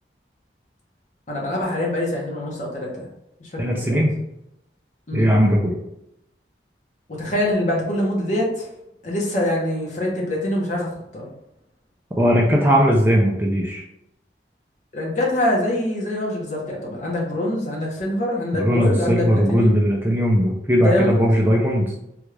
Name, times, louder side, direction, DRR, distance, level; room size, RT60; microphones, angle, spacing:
voice 1, 1.3-3.1 3.4-4.0 5.1-5.3 7.1-8.7 9.0-11.3 14.9-19.8 20.8-21.3, left 1 dB, 45° left, -2 dB, 0.9 m, -24 dB
voice 2, 3.6-4.1 5.1-5.7 12.2-13.8 18.5-21.9, equal, 10° right, -2 dB, 0.4 m, -18 dB
3.5 x 2.3 x 3.2 m, 0.82 s
head